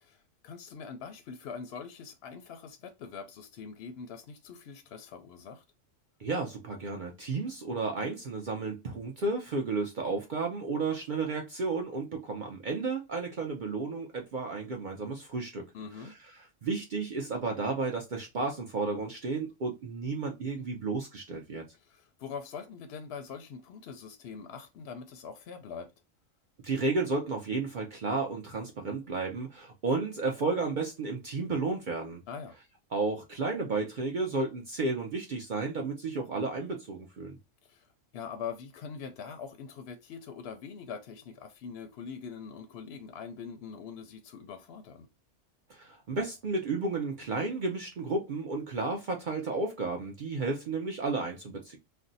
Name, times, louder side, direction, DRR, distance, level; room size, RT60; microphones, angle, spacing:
voice 1, 0.1-5.6 15.7-16.1 21.7-25.9 32.3-32.6 37.6-45.1, left 6 dB, 65° left, 0.7 m, -43 dB
voice 2, 6.2-15.6 16.0-16.1 16.6-21.7 26.6-32.2 32.9-37.4 45.7-51.8, right 3 dB, 55° right, 0.5 m, -32 dB
2.6 x 2.1 x 3.8 m
omnidirectional pair, 1.3 m